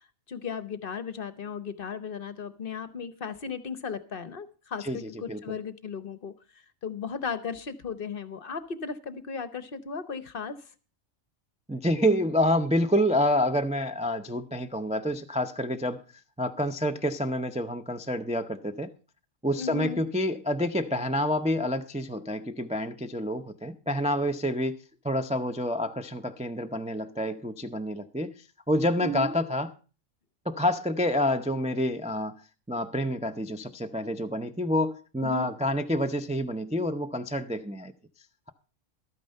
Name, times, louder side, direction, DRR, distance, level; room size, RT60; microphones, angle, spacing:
voice 1, 0.3-10.7 19.6-20.0 29.0-29.3 35.2-35.5, left 5 dB, 50° left, 0.9 m, -36 dB
voice 2, 11.7-16.0 16.4-18.9 19.4-24.7 25.0-28.3 28.7-29.7 30.5-32.3 32.7-37.9, equal, 10° right, 0.4 m, -28 dB
12.5 x 9.2 x 5.3 m
omnidirectional pair, 1.3 m